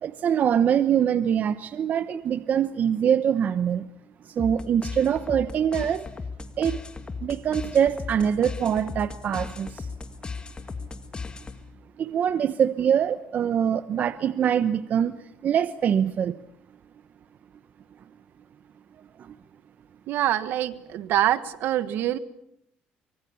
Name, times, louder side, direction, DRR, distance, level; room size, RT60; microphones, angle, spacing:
voice 1, 0.0-3.9 4.3-6.1 6.6-6.8 7.2-9.9 12.0-16.4 19.2-19.4, right 8 dB, 50° right, 13 dB, 1.0 m, -24 dB
sound 1, 4.4-11.8, left 4 dB, 25° left, 1.9 m, -37 dB
voice 2, 20.1-22.2, right 12 dB, 75° right, 14 dB, 1.4 m, -25 dB
24.5 x 24.0 x 7.1 m, 0.75 s
cardioid pair, 100°, 4 cm